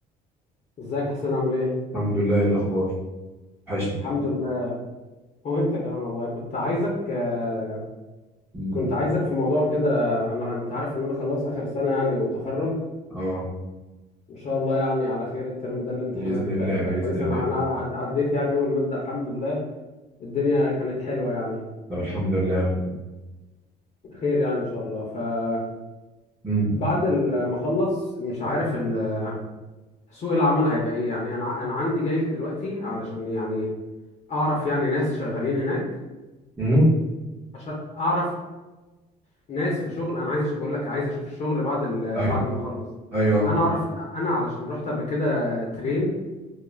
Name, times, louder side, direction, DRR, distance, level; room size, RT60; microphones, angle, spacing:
voice 1, 0.8-1.7 4.0-4.7 5.4-7.8 8.7-12.8 14.3-16.7 17.0-19.6 20.2-21.6 24.1-25.6 26.7-29.3 30.1-33.7 34.3-35.8 37.5-38.3 39.5-42.8 43.4-46.2, left 2 dB, 45° left, -4 dB, 0.7 m, -26 dB
voice 2, 1.9-2.9 3.7-4.0 8.5-8.8 13.1-13.4 16.1-17.4 21.9-22.9 26.4-26.7 36.6-36.9 42.1-42.4 43.1-43.5, right 1 dB, 10° right, -10 dB, 0.7 m, -23 dB
2.3 x 2.1 x 3.1 m, 1.1 s
cardioid pair, 110°, 17 cm